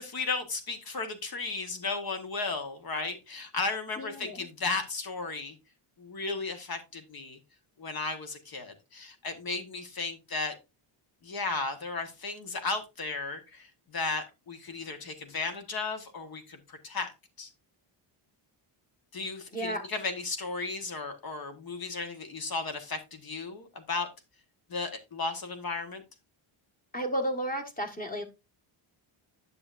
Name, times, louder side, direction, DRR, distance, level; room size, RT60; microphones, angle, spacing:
voice 1, 0.0-5.5 6.0-7.4 7.8-10.5 11.2-13.7 13.9-17.1 17.4-17.5 19.1-24.1 24.7-26.0, left 3 dB, 45° left, 7 dB, 1.3 m, -35 dB
voice 2, 4.0-4.5 19.5-19.8 26.9-28.2, right 1 dB, 15° left, 4 dB, 1.4 m, -33 dB
9.7 x 6.9 x 2.5 m, 0.24 s
wide cardioid pair, 150°, 50 cm